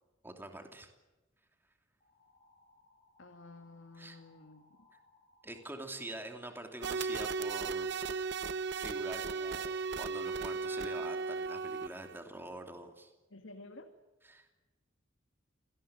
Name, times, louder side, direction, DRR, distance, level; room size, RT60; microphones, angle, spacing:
voice 1, 0.2-0.9 4.0-4.2 5.4-7.9 8.2-13.1 14.3-14.6, right 1 dB, 10° right, 4 dB, 2.9 m, -46 dB
sound 1, 2.0-7.0, left 2 dB, 35° left, 6.5 m, -67 dB
voice 2, 3.2-4.9 13.3-13.9, left 2 dB, 75° left, 5 dB, 2.1 m, -52 dB
sound 2, 6.8-12.2, right 4 dB, 60° right, 0.9 m, -36 dB
27.0 x 19.0 x 9.0 m, 1.1 s
head